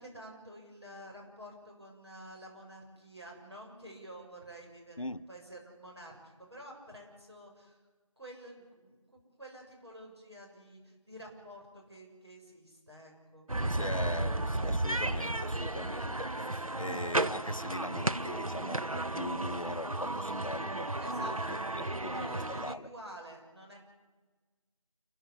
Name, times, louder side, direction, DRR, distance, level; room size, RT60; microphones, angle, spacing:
voice 1, 0.0-7.8 8.2-13.8 21.0-23.8, right 1 dB, 50° right, 7.2 m, -50 dB
voice 2, 5.0-5.3 13.6-22.9, left 1 dB, 65° left, 0.7 m, -41 dB
sound 1, 13.5-22.7, right 2 dB, 75° right, 0.9 m, -33 dB
28.5 x 14.0 x 8.5 m
figure-of-eight pair, 180°, 18 cm